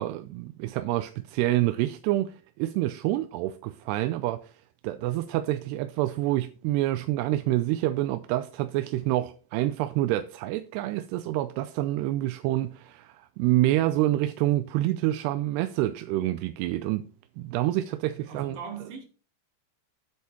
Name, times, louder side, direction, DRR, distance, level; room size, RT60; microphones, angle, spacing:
voice 1, 0.0-4.5 4.8-17.1 17.4-18.6, right 15 dB, 80° right, 2.5 m, -27 dB
voice 2, 18.1-19.0, right 6 dB, 55° right, 4.1 m, -40 dB
9.6 x 8.2 x 4.4 m
omnidirectional pair, 5.1 m